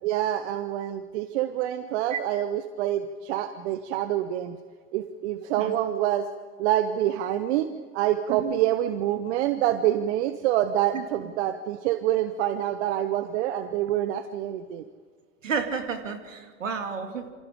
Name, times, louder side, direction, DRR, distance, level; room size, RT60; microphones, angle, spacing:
voice 1, 0.0-4.6 4.9-6.3 6.6-7.7 7.9-14.8, right 12 dB, 60° right, 10 dB, 1.2 m, -26 dB
voice 2, 15.4-17.3, right 5 dB, 80° right, 6 dB, 2.6 m, -31 dB
28.0 x 26.5 x 5.1 m, 1.5 s
figure-of-eight pair, 75°, 38 cm